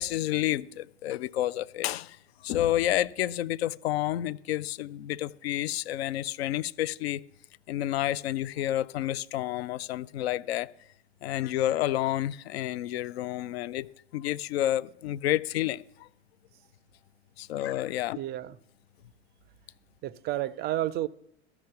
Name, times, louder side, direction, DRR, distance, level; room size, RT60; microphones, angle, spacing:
voice 1, 0.0-2.2 2.4-7.2 7.7-10.7 11.2-13.9 14.1-16.1 17.4-18.2, left 13 dB, 65° left, 0.5 m, -30 dB
voice 2, 18.2-18.5 20.0-21.1, right 14 dB, 30° right, 0.4 m, -31 dB
13.5 x 6.0 x 7.7 m
figure-of-eight pair, 85°, 34 cm